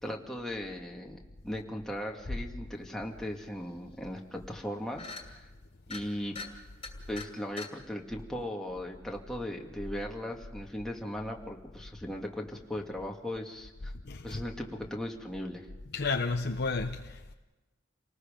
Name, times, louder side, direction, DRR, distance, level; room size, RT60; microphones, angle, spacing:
voice 1, 0.0-5.4 5.9-6.4 7.1-13.9 14.2-15.7, left 1 dB, 5° left, 2.1 m, -38 dB
sound 1, 3.6-3.7 4.0-4.2 4.5-4.7 5.0-5.3 5.8-6.0 6.4-6.5 6.8-7.3 7.6-7.7, left 4 dB, 30° left, 2.8 m, -42 dB
voice 2, 14.1-14.4 15.9-17.3, left 3 dB, 55° left, 0.9 m, -32 dB
29.0 x 19.5 x 5.2 m
head